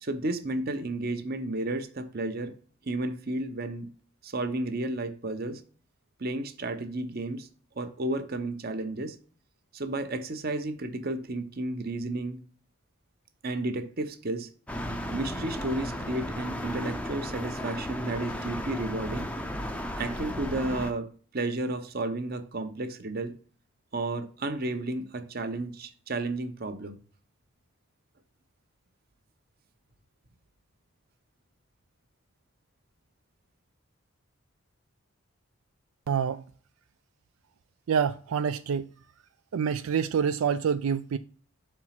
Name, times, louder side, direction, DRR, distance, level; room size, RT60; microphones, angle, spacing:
voice 1, 0.0-2.5 2.8-3.9 4.2-5.6 6.2-7.5 7.8-9.2 9.7-12.4 13.4-14.5 15.1-19.3 20.0-23.3 23.9-27.0, right 2 dB, 45° right, 0.8 m, -32 dB
sound 1, 14.7-20.9, equal, 5° left, 0.5 m, -34 dB
voice 2, 36.1-36.4 37.9-38.9 39.5-41.2, right 7 dB, 75° right, 0.4 m, -27 dB
5.9 x 4.5 x 5.8 m
head